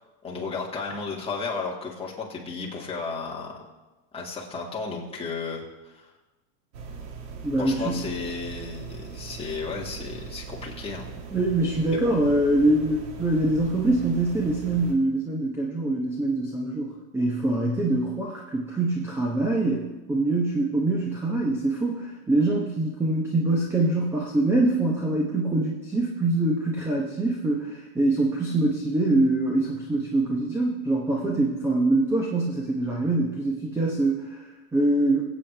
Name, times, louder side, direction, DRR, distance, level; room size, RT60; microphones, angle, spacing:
voice 1, 0.2-3.6 4.1-6.0 7.6-11.1 11.9-12.1, left 4 dB, 10° left, -3 dB, 2.1 m, -34 dB
sound 1, 6.7-14.9, right 5 dB, 80° right, 2.1 m, -40 dB
voice 2, 7.4-8.1 11.3-35.2, right 2 dB, 5° right, -1 dB, 0.8 m, -24 dB
22.0 x 8.5 x 3.4 m, 1.1 s
supercardioid pair, 150°, 50 cm